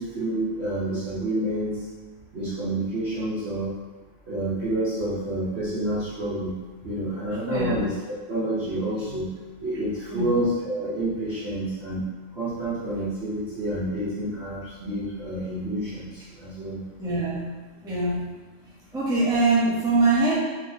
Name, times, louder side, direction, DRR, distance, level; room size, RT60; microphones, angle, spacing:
voice 1, 0.0-1.9 2.3-3.7 4.3-6.6 6.8-7.9 8.3-9.3 9.6-12.1 12.3-16.8, right 1 dB, 60° right, -11 dB, 1.1 m, -29 dB
voice 2, 10.1-10.4 17.0-17.4 17.8-18.2 18.6-20.3, right 3 dB, 5° right, -10 dB, 0.8 m, -23 dB
3.8 x 3.0 x 2.7 m, 1.3 s
omnidirectional pair, 1.3 m